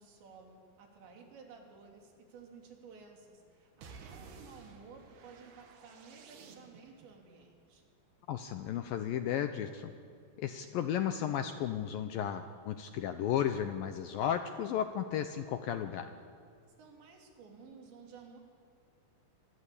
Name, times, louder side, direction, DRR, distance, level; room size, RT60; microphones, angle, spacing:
voice 1, 0.0-7.8 16.8-18.4, right 5 dB, 85° right, 1 dB, 5.5 m, -54 dB
sound 1, 3.8-7.1, right 5 dB, 65° right, 3.8 m, -53 dB
voice 2, 8.3-9.9 10.4-16.1, left 9 dB, 75° left, 8 dB, 2.2 m, -34 dB
24.5 x 23.5 x 8.5 m, 2.3 s
omnidirectional pair, 5.0 m